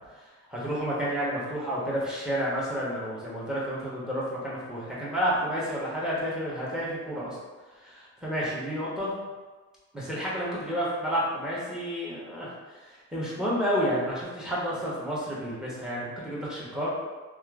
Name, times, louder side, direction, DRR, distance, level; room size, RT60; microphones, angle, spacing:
voice 1, 0.5-7.4 7.8-9.1 9.9-16.9, equal, ahead, -7 dB, 1.0 m, -30 dB
2.9 x 2.1 x 2.4 m, 1.3 s
cardioid pair, 90°, 30 cm